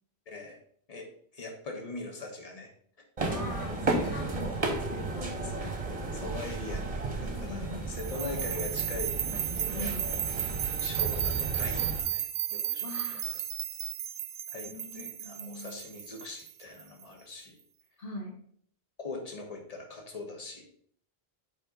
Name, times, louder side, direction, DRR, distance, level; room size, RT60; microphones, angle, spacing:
voice 1, 0.3-0.6 0.9-1.1 1.3-2.7 5.4-5.6 6.1-9.2 9.5-10.2 10.8-12.3 12.5-13.4 14.5-17.5 19.0-20.6, left 3 dB, 35° left, 1 dB, 1.3 m, -41 dB
sound 1, 3.2-12.0, right 2 dB, 35° right, 1.1 m, -33 dB
voice 2, 3.3-5.8 7.5-7.9 9.7-10.1 12.8-13.4 14.7-15.8 18.0-18.4, left 2 dB, 55° left, 0 dB, 1.2 m, -42 dB
sound 2, 8.0-17.0, right 11 dB, 65° right, 0.8 m, -34 dB
7.7 x 4.6 x 3.9 m, 0.62 s
omnidirectional pair, 1.1 m